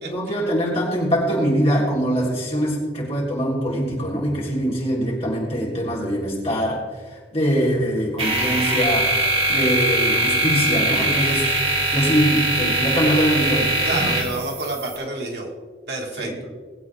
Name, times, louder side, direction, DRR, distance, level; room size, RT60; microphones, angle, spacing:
voice 1, 0.0-6.8 7.1-11.6 11.9-14.1 16.2-16.4, equal, 35° left, -4 dB, 3.8 m, -23 dB
sound 1, 8.2-15.0, right 1 dB, 35° right, 1.8 m, -22 dB
voice 2, 13.8-15.5 15.9-16.4, right 2 dB, 60° right, -1 dB, 2.1 m, -28 dB
20.5 x 8.2 x 3.6 m, 1.5 s
head